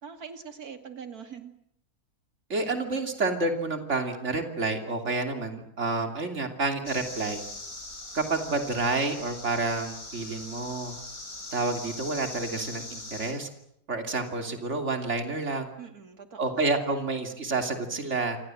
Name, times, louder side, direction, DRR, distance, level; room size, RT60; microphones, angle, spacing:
voice 1, 0.0-1.5 15.8-16.6, right 6 dB, 75° right, 7 dB, 2.8 m, -43 dB
voice 2, 2.5-7.4 8.1-11.0 11.5-13.5 13.9-15.7 16.4-18.4, right 3 dB, 50° right, 5 dB, 3.3 m, -29 dB
sound 1, 6.9-13.3, left 2 dB, 65° left, 5.3 m, -41 dB
28.5 x 24.5 x 7.8 m, 0.76 s
omnidirectional pair, 1.6 m